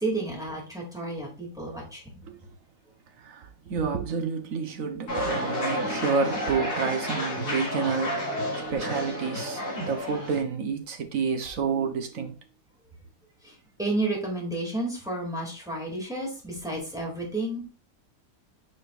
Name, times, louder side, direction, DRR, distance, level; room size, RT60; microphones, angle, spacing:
voice 1, 0.0-2.0 13.4-13.5 13.8-17.6, right 2 dB, ahead, 2.5 m, -31 dB
voice 2, 3.2-12.3, right 5 dB, 55° right, 1.3 m, -29 dB
sound 1, 5.1-10.4, equal, 65° left, 4.1 m, -31 dB
9.0 x 4.4 x 2.5 m
omnidirectional pair, 1.8 m